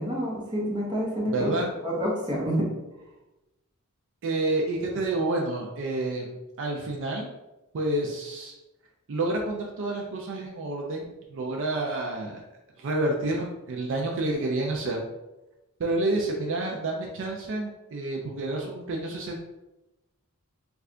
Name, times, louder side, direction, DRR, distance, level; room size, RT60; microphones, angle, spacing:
voice 1, 0.0-1.5 1.8-2.7, equal, 20° right, -4 dB, 0.9 m, -28 dB
voice 2, 1.3-1.7 4.2-7.3 7.7-8.6 9.1-12.4 12.8-15.0 15.8-19.4, right 2 dB, 60° right, 0 dB, 0.4 m, -29 dB
3.2 x 2.3 x 3.7 m, 1.0 s
head